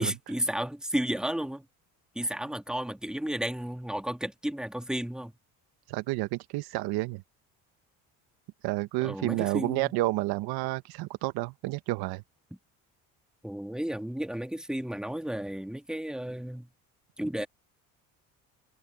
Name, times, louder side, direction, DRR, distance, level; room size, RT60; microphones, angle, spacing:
voice 1, 0.0-1.6 2.1-5.3 9.0-9.9 13.4-16.7 17.2-17.5, right 1 dB, ahead, 1.8 m, -33 dB
voice 2, 5.9-7.2 8.6-12.2, right 19 dB, 75° right, 1.1 m, -30 dB
supercardioid pair, 80°, 38 cm